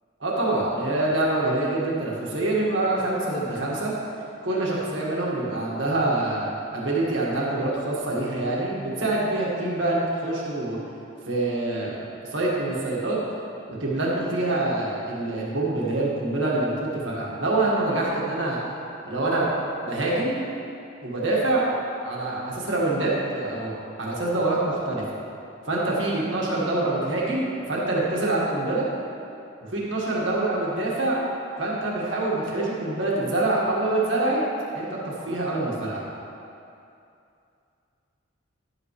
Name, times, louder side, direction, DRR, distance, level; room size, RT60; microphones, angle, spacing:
voice 1, 0.2-3.9 4.4-10.8 11.3-12.0 12.3-13.2 13.8-18.6 19.0-19.5 19.8-20.4 21.0-21.7 22.0-25.0 25.7-28.9 29.7-31.2 31.6-34.4 34.7-36.0, right 2 dB, 70° right, -5 dB, 1.7 m, -25 dB
11.0 x 8.1 x 3.2 m, 2.6 s
head